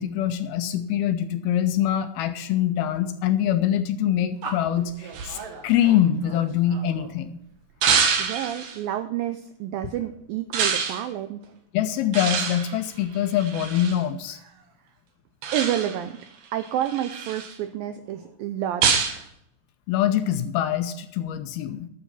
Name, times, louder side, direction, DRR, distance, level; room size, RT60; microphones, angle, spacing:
voice 1, 0.0-7.4 11.7-14.4 19.9-21.9, left 11 dB, 75° left, 9 dB, 2.4 m, -24 dB
sound 1, 4.4-7.1 7.8-8.8 10.5-11.1 12.1-14.0 15.4-16.1 16.6-17.6 18.8-19.2, right 6 dB, 60° right, 2.6 m, -26 dB
voice 2, 8.2-11.5 15.5-16.2 16.5-19.3, right 11 dB, 85° right, 9 dB, 2.0 m, -29 dB
12.5 x 7.5 x 5.5 m, 0.77 s
omnidirectional pair, 4.8 m